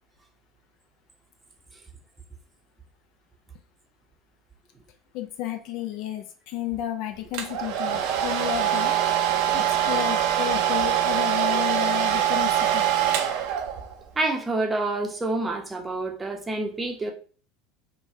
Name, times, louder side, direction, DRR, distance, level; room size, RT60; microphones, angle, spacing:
voice 1, 5.1-8.9 9.5-12.9, left 12 dB, 55° left, 0.4 m, -32 dB
Domestic sounds home sounds, 7.3-14.0, right 10 dB, 60° right, 0.4 m, -24 dB
voice 2, 14.2-17.1, right 2 dB, 20° right, 0.6 m, -27 dB
3.1 x 2.2 x 2.7 m
hypercardioid pair, 75°, 0 cm